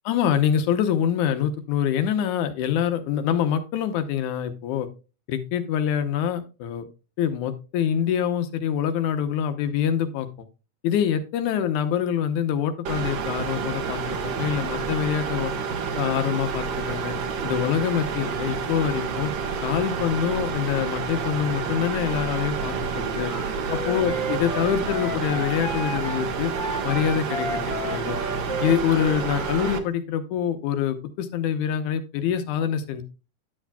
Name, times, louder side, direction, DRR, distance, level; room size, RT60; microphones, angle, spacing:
voice 1, 0.1-4.9 5.3-6.9 7.2-10.3 10.8-15.5 16.0-17.2 17.4-19.3 19.6-23.3 23.7-26.5 26.8-28.2 28.6-33.0, left 9 dB, 80° left, 9 dB, 2.3 m, -25 dB
sound 1, 12.9-29.8, right 5 dB, 75° right, 1.0 m, -29 dB
Wind instrument woodwind instrument, 23.2-29.8, right 1 dB, 35° left, 0.8 m, -33 dB
11.0 x 7.4 x 2.2 m, 0.31 s
omnidirectional pair, 3.4 m